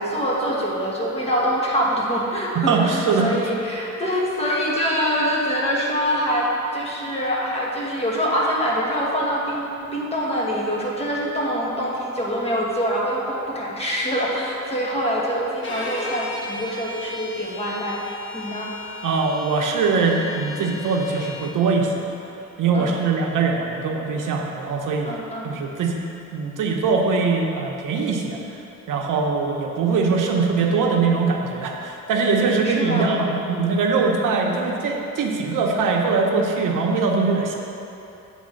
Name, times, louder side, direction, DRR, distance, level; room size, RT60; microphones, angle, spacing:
voice 1, 0.0-18.7 22.7-23.0 25.0-25.5 32.6-33.1 34.2-34.4, equal, 20° left, -4 dB, 1.3 m, -25 dB
voice 2, 2.5-3.3 19.0-22.1 22.6-25.1 25.4-26.0 26.3-28.4 28.9-37.5, right 4 dB, 85° right, 1 dB, 0.9 m, -22 dB
Bowed string instrument, 15.6-21.6, left 2 dB, 40° left, 1.1 m, -35 dB
8.3 x 3.6 x 6.4 m, 2.9 s
cardioid pair, 125°, 31 cm